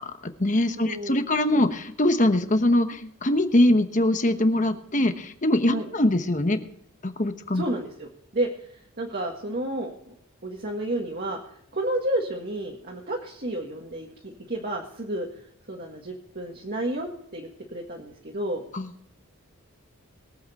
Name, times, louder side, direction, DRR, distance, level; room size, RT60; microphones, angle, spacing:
voice 1, 0.0-6.6 7.0-7.6 18.7-18.9, left 1 dB, 35° left, 8 dB, 1.1 m, -23 dB
voice 2, 0.8-1.2 5.7-5.9 7.5-8.5 9.0-10.1 10.4-11.4 11.7-15.3 15.7-18.6, right 1 dB, 45° right, -1 dB, 1.7 m, -31 dB
22.0 x 7.9 x 4.2 m, 0.73 s
head